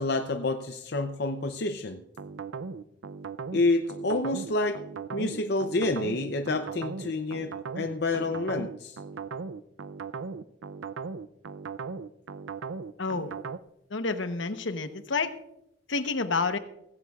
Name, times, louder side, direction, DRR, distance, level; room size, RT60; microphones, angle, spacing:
voice 1, 0.0-2.0 3.5-9.0, left 2 dB, 60° left, 6 dB, 0.6 m, -28 dB
sound 1, 2.2-13.6, right 5 dB, 90° right, 0.5 m, -38 dB
voice 2, 13.0-13.3 13.9-15.3 15.9-16.6, left 4 dB, 75° left, 9 dB, 1.0 m, -29 dB
17.5 x 16.0 x 2.4 m, 0.83 s
head